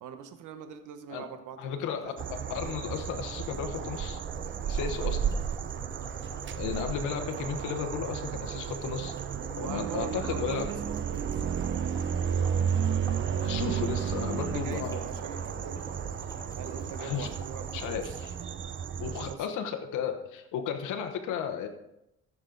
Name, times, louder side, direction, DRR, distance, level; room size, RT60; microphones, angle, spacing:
voice 1, 0.0-2.4 4.7-5.2 5.8-6.1 9.6-10.8 11.1-11.5 14.2-15.9 16.6-18.2 19.1-19.5, right 8 dB, 85° right, 8 dB, 1.0 m, -42 dB
voice 2, 1.6-4.2 4.7-5.2 6.5-9.1 9.5-10.7 13.4-15.0 17.0-17.3 17.7-18.3 19.0-21.7, left 8 dB, 90° left, 6 dB, 1.0 m, -34 dB
sound 1, 2.0-18.4, left 2 dB, 10° left, 2.6 m, -48 dB
sound 2, 2.2-19.3, right 8 dB, 40° right, 0.6 m, -33 dB
15.0 x 6.2 x 3.9 m, 0.85 s
cardioid pair, 90°, 30 cm